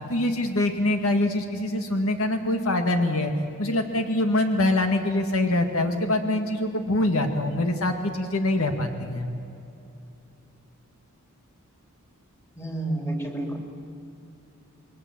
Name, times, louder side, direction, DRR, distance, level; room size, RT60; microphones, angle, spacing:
voice 1, 0.1-3.3 3.6-9.3, left 1 dB, 70° left, 5 dB, 1.9 m, -24 dB
voice 2, 12.6-13.6, right 1 dB, 10° left, 2 dB, 3.3 m, -29 dB
28.5 x 22.0 x 7.6 m, 2.8 s
head